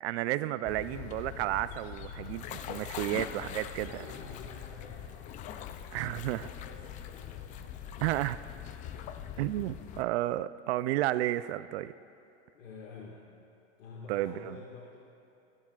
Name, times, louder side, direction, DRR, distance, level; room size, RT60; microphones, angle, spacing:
voice 1, 0.0-3.9 5.9-6.5 8.0-8.4 9.4-11.9 14.1-14.6, right 15 dB, 60° right, 15 dB, 0.4 m, -32 dB
sound 1, 0.6-10.0, left 9 dB, 20° left, 0.3 m, -42 dB
voice 2, 2.6-3.0 3.8-5.3 6.1-7.8 9.3-9.7 12.5-13.2 13.8-15.0, left 4 dB, 90° left, -4 dB, 1.9 m, -49 dB
22.0 x 12.5 x 2.4 m, 2.8 s
supercardioid pair, 130°, 37 cm